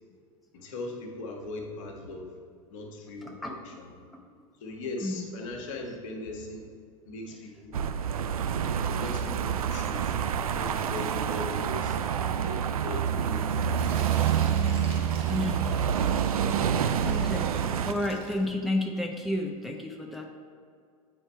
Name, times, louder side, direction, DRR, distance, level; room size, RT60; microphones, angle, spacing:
voice 1, 0.5-2.4 2.7-3.9 4.6-6.7 7.1-7.8 9.0-10.2 10.5-12.0 12.4-14.3, left 2 dB, 60° left, 1 dB, 1.2 m, -39 dB
voice 2, 3.2-3.6 4.1-4.2 5.0-5.2 15.3-15.6 17.0-17.5 17.8-20.2, left 1 dB, ahead, 1 dB, 0.6 m, -31 dB
sound 1, 7.7-17.9, right 8 dB, 80° right, 0.4 m, -27 dB
Tearing, 13.7-18.8 19.2-19.3, right 3 dB, 30° right, 1.3 m, -45 dB
7.9 x 4.6 x 4.3 m, 2.2 s
figure-of-eight pair, 85°, 18 cm